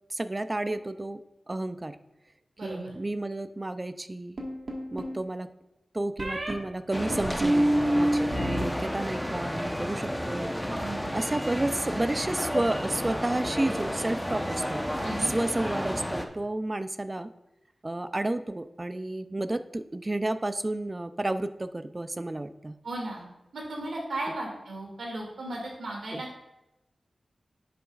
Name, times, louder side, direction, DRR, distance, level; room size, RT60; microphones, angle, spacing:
voice 1, 0.1-1.2 1.5-2.0 2.6-4.4 4.9-5.5 5.9-10.5 11.1-17.3 17.8-22.8 26.1-26.2, right 2 dB, 30° right, 11 dB, 0.4 m, -31 dB
sound 1, 4.4-5.2 6.2-6.5 7.1-8.6 8.9-9.5, right 1 dB, 60° right, 1.5 m, -27 dB
sound 2, 6.9-16.3, equal, 5° left, 0.8 m, -32 dB
voice 2, 22.8-23.2 23.5-26.4, right 1 dB, 90° right, -1 dB, 2.2 m, -35 dB
9.9 x 7.8 x 2.4 m, 0.92 s
cardioid pair, 55°, 0 cm